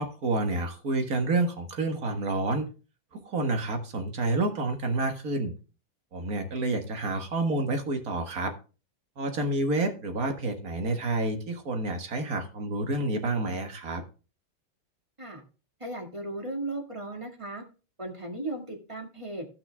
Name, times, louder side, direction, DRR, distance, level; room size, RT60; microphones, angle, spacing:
voice 1, 0.0-2.7 3.1-5.5 6.1-8.5 9.2-14.0, right 2 dB, 45° right, 5 dB, 1.8 m, -29 dB
voice 2, 15.8-17.6 18.0-19.5, right 2 dB, 15° right, 2 dB, 1.6 m, -36 dB
15.5 x 5.7 x 3.4 m, 0.34 s
omnidirectional pair, 2.4 m